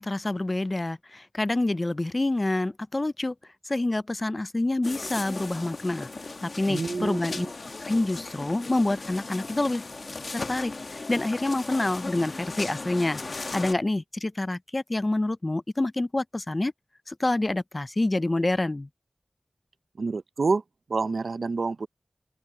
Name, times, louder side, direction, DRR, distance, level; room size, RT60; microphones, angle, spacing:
voice 1, 0.0-3.3 3.7-6.1 6.4-7.5 7.9-9.9 10.3-16.7 17.1-18.9, left 2 dB, 35° left, 0.5 m, -27 dB
sound 1, 4.8-13.7, left 3 dB, 65° left, 1.3 m, -37 dB
voice 2, 6.7-7.5 20.0-20.6 20.9-21.9, right 4 dB, 90° right, 0.6 m, -28 dB
open air
wide cardioid pair, 60°, 0 cm